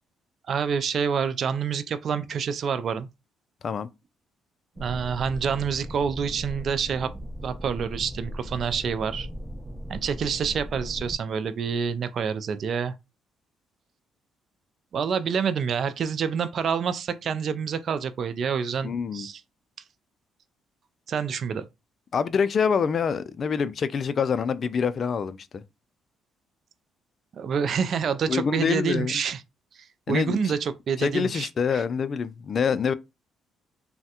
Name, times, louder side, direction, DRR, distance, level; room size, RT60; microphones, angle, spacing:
voice 1, 0.5-3.1 4.8-7.1 7.4-9.3 9.9-12.9 14.9-19.4 21.1-21.6 27.3-29.4 29.7-31.8, right 6 dB, 55° right, 0.3 m, -27 dB
sound 1, 4.8-11.2, equal, 15° right, 0.7 m, -38 dB
voice 2, 18.8-19.3 22.1-25.6 28.3-29.1 30.1-30.5 31.0-32.9, left 6 dB, 50° left, 0.3 m, -26 dB
3.2 x 2.1 x 2.8 m
supercardioid pair, 70°, 0 cm